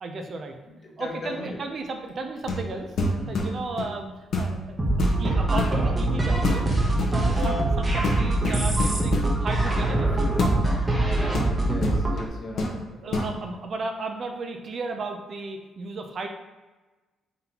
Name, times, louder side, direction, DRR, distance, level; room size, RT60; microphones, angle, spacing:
voice 1, 0.0-0.5 1.0-2.9 3.3-4.1 4.4-6.7 7.1-10.4 12.6-16.3, right 3 dB, 50° right, 4 dB, 0.5 m, -34 dB
voice 2, 0.7-1.6 3.2-3.4 7.1-7.4 11.6-12.9, left 2 dB, 45° left, -1 dB, 1.1 m, -37 dB
sound 1, 2.4-2.7 3.0-4.0 4.3-4.6 5.0-5.8 6.4-6.7 7.0-7.6 8.0-9.3 10.4-10.6 11.3-12.3 12.6-12.8 13.1-13.3, left 2 dB, 65° left, 0.8 m, -27 dB
sound 2, 4.8-12.2, right 2 dB, 25° right, 1.0 m, -23 dB
3.8 x 3.8 x 2.9 m, 1.2 s
cardioid pair, 90°, 0 cm